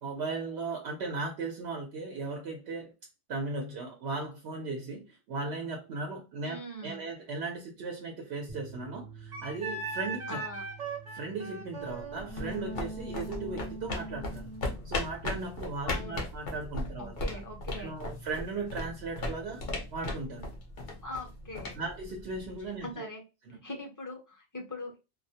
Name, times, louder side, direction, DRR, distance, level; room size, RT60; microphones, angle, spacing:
voice 1, 0.0-2.9 3.3-10.4 11.1-14.5 14.8-17.4 17.8-19.6 19.9-20.5 21.8-23.1 23.5-23.6, right 3 dB, 80° right, 0.9 m, -37 dB
voice 2, 6.4-7.1 10.3-10.6 15.9-16.2 17.0-18.0 21.0-21.8 22.8-23.2 23.6-25.0, left 1 dB, 20° left, 0.6 m, -41 dB
sound 1, 8.5-14.7, right 6 dB, 25° right, 0.3 m, -51 dB
Wind instrument woodwind instrument, 9.3-14.7, right 3 dB, 45° right, 0.8 m, -39 dB
sound 2, 12.0-22.7, left 2 dB, 55° left, 0.8 m, -38 dB
2.3 x 2.0 x 2.7 m
omnidirectional pair, 1.1 m